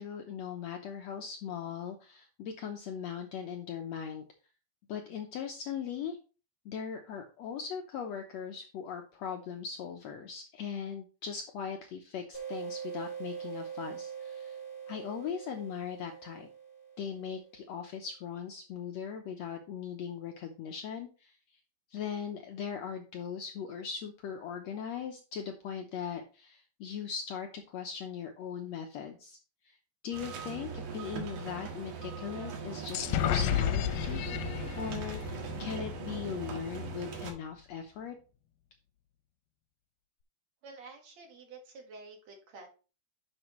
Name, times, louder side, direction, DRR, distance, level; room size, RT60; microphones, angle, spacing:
voice 1, 0.0-4.2 4.9-6.2 6.6-14.6 14.9-16.5 17.0-21.4 21.9-29.4 29.6-29.8 30.0-34.5 34.8-38.2, left 7 dB, 70° left, 4 dB, 1.6 m, -39 dB
sound 1, 12.3-17.7, right 7 dB, 35° left, 2.9 m, -43 dB
sound 2, 30.1-37.3, right 5 dB, 80° right, 3.2 m, -40 dB
sound 3, 32.9-36.6, left 10 dB, 90° left, 2.3 m, -32 dB
voice 2, 40.6-42.7, right 3 dB, 55° right, 2 dB, 2.7 m, -49 dB
11.0 x 6.1 x 3.1 m, 0.35 s
omnidirectional pair, 3.8 m